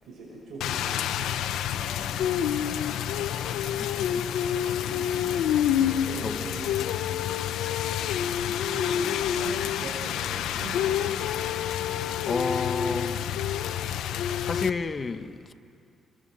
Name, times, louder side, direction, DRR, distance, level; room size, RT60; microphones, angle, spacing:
voice 1, 0.0-3.7 4.0-5.5 6.0-6.8 8.7-11.4, right 2 dB, 70° right, -2 dB, 5.9 m, -43 dB
Rain, 0.6-14.7, left 9 dB, 85° left, 0.9 m, -28 dB
sound 1, 5.5-13.0 13.8-14.2, equal, 5° left, 2.3 m, -48 dB
voice 2, 12.3-13.3 14.4-15.5, left 4 dB, 35° left, 10 dB, 1.0 m, -31 dB
28.5 x 21.5 x 7.7 m, 2.4 s
cardioid pair, 90°, 0 cm